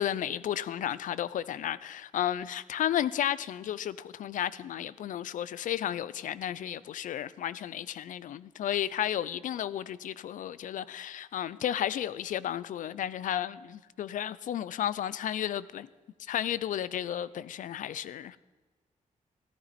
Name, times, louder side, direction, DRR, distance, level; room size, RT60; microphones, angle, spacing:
voice 1, 0.0-15.9 16.3-18.4, left 11 dB, 70° left, 0.4 m, -33 dB
14.0 x 13.0 x 4.2 m
wide cardioid pair, 175°, 14 cm